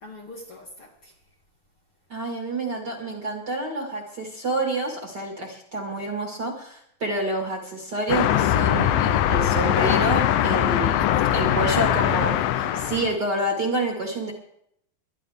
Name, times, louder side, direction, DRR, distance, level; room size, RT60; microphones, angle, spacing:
voice 1, 0.0-1.1 11.0-11.7 12.3-12.9, left 3 dB, 50° left, -1 dB, 2.0 m, -41 dB
voice 2, 2.1-11.0 11.3-14.3, right 2 dB, 35° right, 1 dB, 2.1 m, -28 dB
sound 1, 8.1-13.2, left 11 dB, 80° left, 2.4 m, -21 dB
21.5 x 11.5 x 3.6 m, 0.73 s
omnidirectional pair, 4.0 m